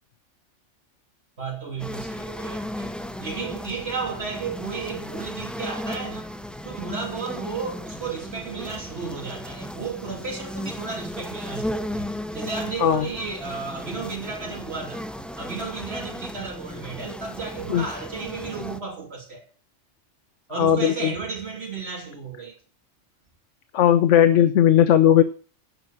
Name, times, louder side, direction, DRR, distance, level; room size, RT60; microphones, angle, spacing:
voice 1, 1.4-2.9 3.2-6.3 6.6-12.1 12.3-15.0 15.4-19.4 20.5-22.5, right 5 dB, 55° right, 3.3 m, -33 dB
sound 1, 1.8-18.8, equal, ahead, 0.6 m, -35 dB
voice 2, 20.5-21.1 23.7-25.2, left 10 dB, 75° left, 1.0 m, -17 dB
9.9 x 7.2 x 7.3 m
omnidirectional pair, 1.3 m